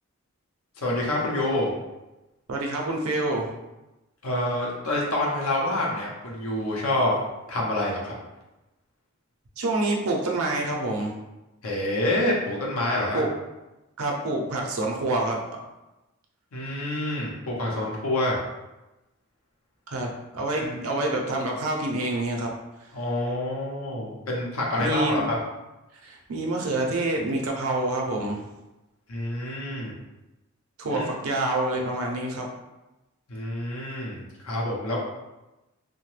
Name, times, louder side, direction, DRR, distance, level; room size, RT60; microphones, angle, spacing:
voice 1, 0.8-1.7 4.2-7.1 7.5-8.1 11.6-13.2 16.5-18.4 20.6-20.8 22.9-25.4 29.1-29.9 30.9-31.1 33.3-35.0, left 1 dB, 80° left, -3 dB, 0.7 m, -27 dB
voice 2, 2.5-3.5 9.6-11.1 13.1-13.3 14.0-15.4 19.9-22.5 24.8-25.3 26.0-28.4 30.8-32.5, right 2 dB, 85° right, 0 dB, 0.6 m, -27 dB
2.8 x 2.1 x 3.1 m, 1.0 s
head